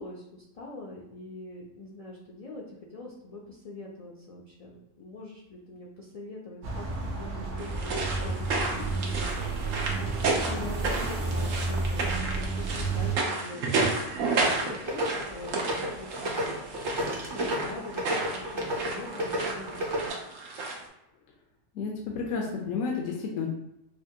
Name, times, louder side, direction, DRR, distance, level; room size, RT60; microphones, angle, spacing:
voice 1, 0.0-6.9 7.1-9.5 9.8-13.8 14.4-16.6 17.0-20.2, left 2 dB, 55° left, -3 dB, 0.4 m, -43 dB
sound 1, 6.6-13.2, right 3 dB, 60° right, 0.9 m, -31 dB
sound 2, 7.6-20.9, right 3 dB, 85° right, 1.1 m, -32 dB
sound 3, 14.9-20.1, equal, 30° right, 0.6 m, -33 dB
voice 2, 21.7-23.5, left 5 dB, 85° left, 0 dB, 1.0 m, -31 dB
4.9 x 2.2 x 2.7 m, 0.88 s
omnidirectional pair, 1.3 m